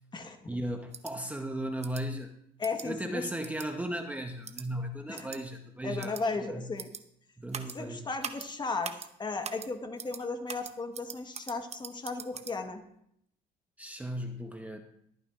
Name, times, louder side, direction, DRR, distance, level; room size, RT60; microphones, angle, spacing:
voice 1, 0.5-2.3 2.8-6.1 6.5-6.7 7.4-8.1 13.8-14.8, right 1 dB, 10° right, 4 dB, 0.8 m, -36 dB
sound 1, 0.9-1.1 1.8-2.0 2.6-2.9 3.4-3.7 4.4-4.6 5.1-5.4 6.0-6.2 6.8-7.0 7.5-7.8 8.2-8.5 8.8-9.1 9.4-9.7 10.0-10.2 10.5-12.5, right 7 dB, 40° right, 0.9 m, -41 dB
voice 2, 2.6-3.3 5.1-5.3 5.8-6.9 7.7-8.9 9.2-12.8, left 3 dB, 25° left, 6 dB, 1.3 m, -35 dB
22.0 x 9.1 x 2.5 m, 0.73 s
cardioid pair, 110°, 17 cm